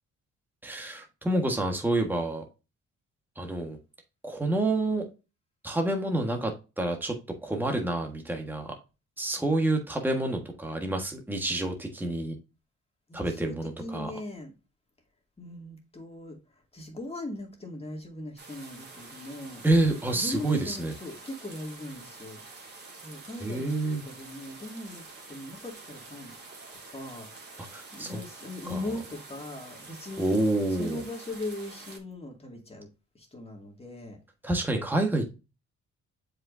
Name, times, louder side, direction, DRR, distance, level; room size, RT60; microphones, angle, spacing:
voice 1, 0.6-2.4 3.3-3.8 4.2-5.1 5.6-7.2 7.4-8.8 9.2-12.4 13.1-14.1 19.6-20.9 23.4-24.0 27.7-28.2 28.6-28.8 30.2-31.0 34.4-35.3, right 2 dB, 5° right, 1.4 m, -28 dB
voice 2, 13.1-14.5 15.4-19.6 20.1-22.4 22.9-23.7 24.0-26.3 26.9-27.3 27.9-30.4 30.8-32.9 33.1-34.2, left 2 dB, 20° left, 2.3 m, -39 dB
sound 1, 18.4-32.0, right 3 dB, 35° right, 2.4 m, -47 dB
7.4 x 5.2 x 2.6 m
cardioid pair, 90°, 30 cm